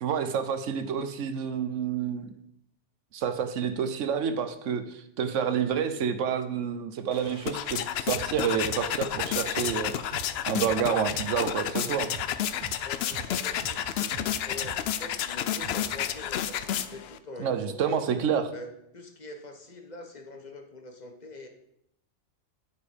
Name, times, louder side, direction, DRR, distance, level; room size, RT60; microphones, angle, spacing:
voice 1, 0.0-2.3 3.1-9.9 10.5-12.1 17.4-18.5, right 7 dB, 85° right, 9 dB, 1.1 m, -29 dB
sound 1, 7.1-17.2, left 10 dB, 65° left, 0.7 m, -31 dB
sound 2, 8.1-8.3 8.6-8.8 9.1-9.3 9.6-11.3 11.6-11.7 12.1-12.3 12.6-12.8 13.1-13.3 13.6-15.2 15.6-16.0, right 5 dB, 40° right, 1.0 m, -43 dB
voice 2, 12.5-18.0 18.5-21.5, left 2 dB, 35° left, 4 dB, 1.2 m, -44 dB
8.7 x 7.1 x 5.1 m, 0.76 s
omnidirectional pair, 1.2 m